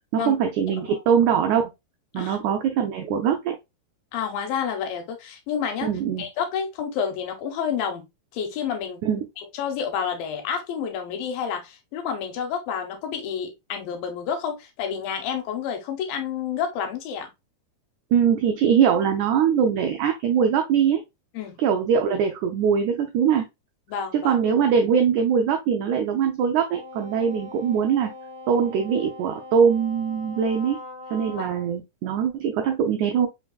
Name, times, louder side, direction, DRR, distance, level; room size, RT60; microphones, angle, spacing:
voice 1, 0.1-1.7 2.1-3.6 5.8-6.2 9.0-9.2 18.1-21.0 21.6-23.5 24.1-28.1 28.5-30.8 31.1-33.3, right 7 dB, 90° right, 1.7 m, -22 dB
voice 2, 0.7-1.0 2.1-2.4 4.1-5.9 6.2-8.0 8.3-9.0 9.4-17.3 21.3-21.6 23.9-24.4 31.4-31.5, left 7 dB, 80° left, 2.6 m, -29 dB
Wind instrument woodwind instrument, 26.7-31.7, left 2 dB, 20° right, 0.8 m, -41 dB
5.2 x 3.5 x 2.3 m
omnidirectional pair, 4.0 m